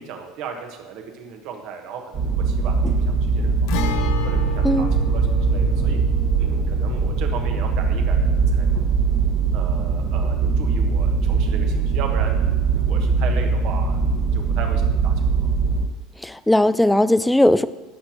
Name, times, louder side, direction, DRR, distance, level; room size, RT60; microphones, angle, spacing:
voice 1, 0.0-3.9 4.2-6.0 6.4-8.9 9.5-14.0 14.3-15.5, right 6 dB, 65° right, 4 dB, 1.3 m, -36 dB
sound 1, 2.1-15.9, right 5 dB, 40° right, 1.4 m, -21 dB
Guitar, 3.7-11.3 11.6-11.7 13.7-13.8, left 9 dB, 70° left, 0.8 m, -33 dB
voice 2, 16.2-17.7, left 1 dB, 5° left, 15 dB, 0.4 m, -17 dB
16.0 x 5.9 x 3.0 m, 1.2 s
supercardioid pair, 100°, 0 cm